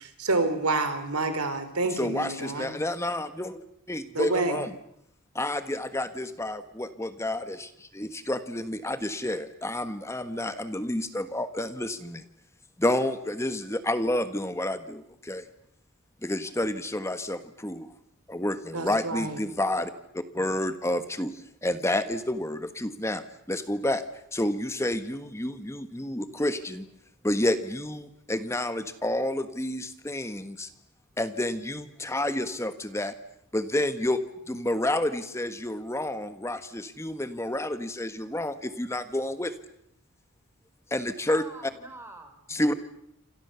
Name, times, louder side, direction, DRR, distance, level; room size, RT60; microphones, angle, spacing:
voice 1, 0.0-2.7 4.1-4.6 18.7-19.4, right 3 dB, 90° right, 9 dB, 4.1 m, -28 dB
voice 2, 1.9-4.7 5.3-12.2 12.8-15.5 16.2-17.9 18.3-23.2 23.5-24.0 24.3-26.9 27.2-30.7 31.2-33.2 33.5-34.2 34.5-39.5 40.9-41.7 42.5-42.7, left 1 dB, 10° left, 10 dB, 1.3 m, -30 dB
voice 3, 41.3-42.8, right 2 dB, 10° right, 6 dB, 4.2 m, -46 dB
28.5 x 26.0 x 6.9 m, 0.73 s
head